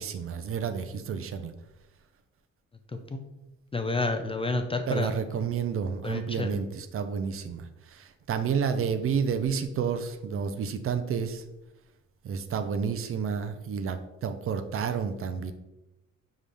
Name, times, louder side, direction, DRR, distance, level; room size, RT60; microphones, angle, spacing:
voice 1, 0.0-1.5 4.9-11.4 12.2-15.5, right 6 dB, 45° right, 9 dB, 0.5 m, -30 dB
voice 2, 3.7-5.2 6.0-6.5, left 3 dB, 20° left, 5 dB, 0.3 m, -29 dB
5.4 x 2.5 x 3.3 m, 0.95 s
cardioid pair, 90°, 30 cm